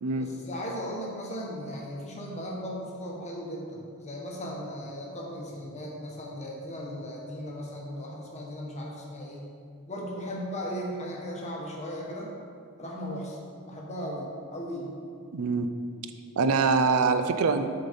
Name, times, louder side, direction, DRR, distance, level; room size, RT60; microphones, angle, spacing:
voice 1, 0.1-9.4 9.9-12.3 12.8-13.4 13.7-14.9, equal, 30° left, -2 dB, 1.1 m, -37 dB
voice 2, 15.3-15.7 16.4-17.7, right 4 dB, 75° right, 9 dB, 0.4 m, -24 dB
7.2 x 3.9 x 5.3 m, 2.2 s
head